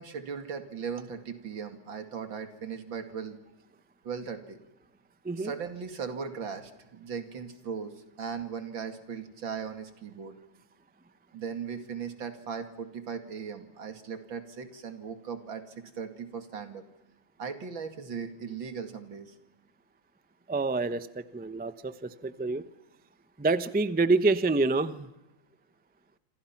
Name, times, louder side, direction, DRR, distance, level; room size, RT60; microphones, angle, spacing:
voice 1, 0.0-3.4 4.0-4.6 5.4-10.3 11.3-15.6 16.0-16.8 17.4-19.3, right 6 dB, 90° right, 7 dB, 3.0 m, -38 dB
voice 2, 20.5-21.1 21.3-22.6 23.4-25.1, right 3 dB, 15° right, 12 dB, 0.3 m, -27 dB
28.0 x 26.5 x 6.0 m, 0.95 s
omnidirectional pair, 2.0 m